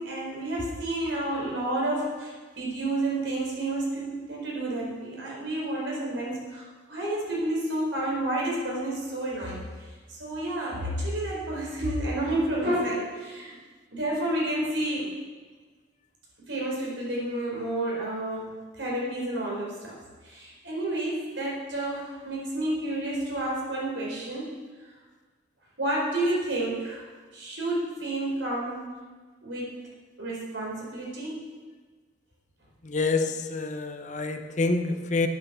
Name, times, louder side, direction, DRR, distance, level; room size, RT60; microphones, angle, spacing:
voice 1, 0.0-9.7 10.1-13.5 13.9-15.1 16.5-20.0 20.2-24.5 25.8-28.9 29.4-29.8 30.2-31.5, right 1 dB, 70° right, -4 dB, 4.5 m, -30 dB
voice 2, 32.9-35.3, left 3 dB, 40° left, 7 dB, 0.7 m, -27 dB
9.4 x 9.0 x 7.4 m, 1.4 s
head